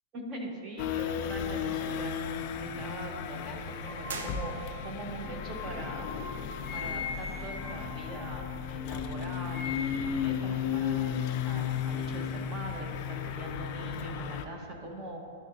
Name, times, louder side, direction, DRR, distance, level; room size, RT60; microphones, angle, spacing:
voice 1, 0.1-6.1 6.7-15.2, right 1 dB, 20° right, 1 dB, 0.9 m, -42 dB
sound 1, 0.8-14.5, left 8 dB, 35° left, 0.4 m, -34 dB
sound 2, 3.6-8.9 9.2-10.3, left 5 dB, 10° left, 1.5 m, -42 dB
sound 3, 4.0-5.1, right 4 dB, 75° right, 0.6 m, -41 dB
11.0 x 4.0 x 2.6 m, 2.2 s
hypercardioid pair, 165°, 0 cm